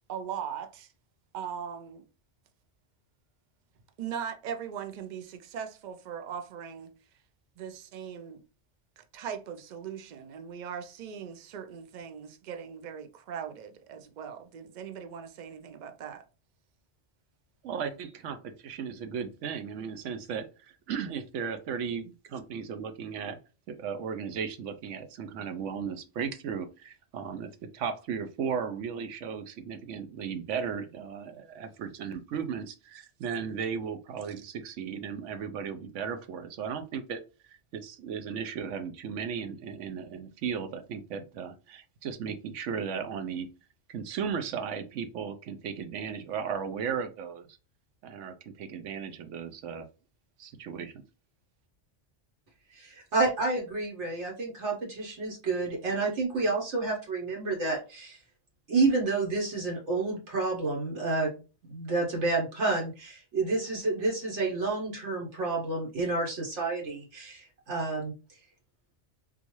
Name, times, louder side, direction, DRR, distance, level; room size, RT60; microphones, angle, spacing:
voice 1, 0.1-0.9 1.3-2.1 4.0-6.9 7.6-8.4 9.0-16.2, right 8 dB, 55° right, 0.5 m, -39 dB
voice 2, 17.6-23.4 23.7-37.2 37.5-43.5 43.9-47.5 48.0-49.9 50.4-51.0, right 6 dB, 90° right, 1.0 m, -36 dB
voice 3, 52.7-58.2 58.7-61.3 61.7-68.1, right 3 dB, 75° right, 1.3 m, -29 dB
3.8 x 2.5 x 3.0 m
omnidirectional pair, 1.2 m